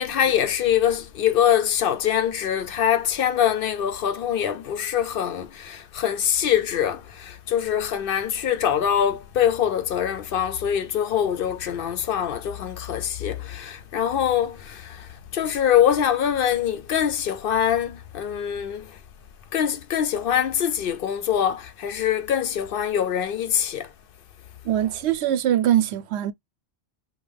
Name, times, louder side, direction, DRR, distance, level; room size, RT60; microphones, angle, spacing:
voice 1, 0.0-19.0 19.5-23.9, left 9 dB, 65° left, 0.7 m, -24 dB
voice 2, 24.6-26.3, right 11 dB, 80° right, 0.8 m, -22 dB
5.2 x 2.1 x 3.4 m
omnidirectional pair, 1.1 m